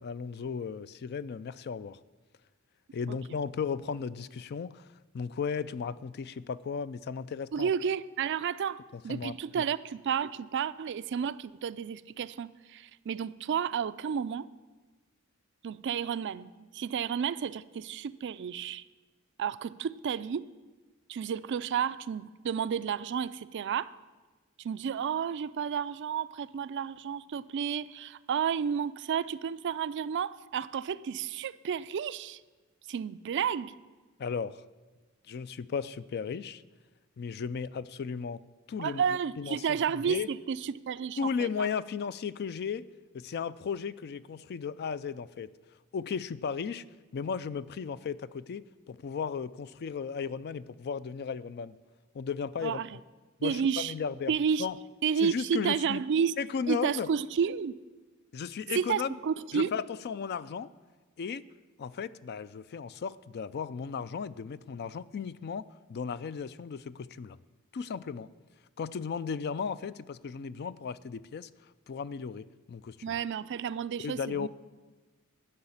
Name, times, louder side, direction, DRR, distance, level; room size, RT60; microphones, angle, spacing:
voice 1, 0.0-2.0 2.9-4.9 5.1-7.7 9.1-9.6 34.2-34.6 35.3-36.6 37.2-39.0 39.4-39.7 39.9-40.3 41.2-42.9 43.1-45.5 45.9-46.8 47.1-51.8 52.1-52.8 53.4-54.3 54.6-54.8 55.2-56.0 56.4-57.1 58.3-59.2 59.5-60.7 61.2-61.4 61.8-65.6 65.9-67.4 67.7-68.3 68.8-71.5 71.9-73.0 74.0-74.5, left 6 dB, 50° left, 17 dB, 0.4 m, -35 dB
voice 2, 7.5-14.5 15.6-18.8 19.4-20.5 21.1-23.9 24.6-32.4 32.9-33.7 38.8-41.7 52.6-53.0 53.4-53.9 54.3-54.7 55.0-56.4 56.7-57.8 58.7-59.7 73.0-74.5, right 7 dB, 55° right, 16 dB, 0.4 m, -31 dB
12.0 x 5.7 x 8.6 m, 1.3 s
head